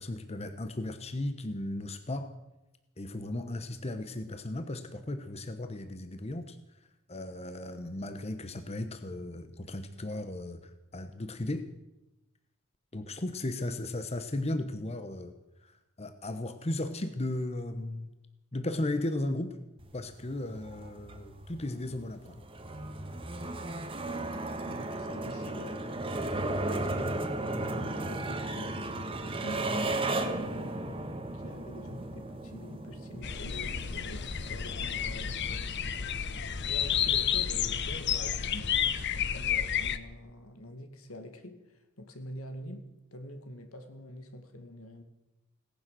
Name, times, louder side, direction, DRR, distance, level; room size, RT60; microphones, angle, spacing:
voice 1, 0.0-2.3 3.0-6.6 7.1-11.7 12.9-15.3 15.6-18.1 18.5-19.6 19.9-22.4, left 1 dB, 30° left, 1.0 m, -36 dB
sound 1, 19.8-39.1, right 2 dB, 25° right, 1.4 m, -36 dB
voice 2, 24.3-26.0 26.6-28.8 29.2-35.8 36.6-38.8 39.1-45.0, left 1 dB, 80° left, 2.2 m, -45 dB
sound 2, 33.2-40.0, left 8 dB, 55° left, 0.9 m, -31 dB
18.0 x 10.5 x 7.7 m
head